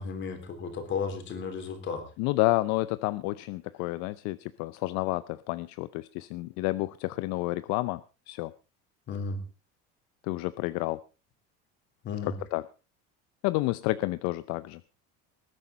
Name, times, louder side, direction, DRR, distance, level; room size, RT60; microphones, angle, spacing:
voice 1, 0.0-2.0 9.1-9.4 12.0-12.3, left 5 dB, 40° left, 7 dB, 3.7 m, -34 dB
voice 2, 2.2-8.5 10.2-11.0 12.3-12.6 13.4-14.8, left 19 dB, 65° left, 16 dB, 0.7 m, -30 dB
20.0 x 11.0 x 4.0 m, 0.31 s
cardioid pair, 150°, 30 cm